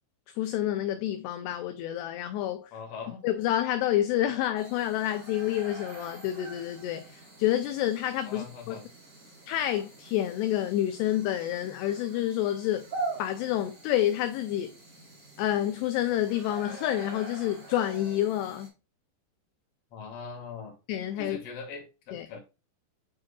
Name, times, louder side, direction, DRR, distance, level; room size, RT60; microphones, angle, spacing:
voice 1, 0.4-2.7 3.2-8.8 9.5-12.9 13.2-14.7 15.4-18.7 20.9-21.4 22.1-22.3, left 12 dB, 80° left, 2.5 m, -28 dB
voice 2, 2.7-3.3 8.2-8.9 19.9-20.7 21.2-22.4, left 5 dB, 45° left, 2.4 m, -41 dB
sound 1, 4.5-18.7, right 3 dB, 30° right, 1.5 m, -44 dB
8.5 x 4.8 x 2.4 m
omnidirectional pair, 5.3 m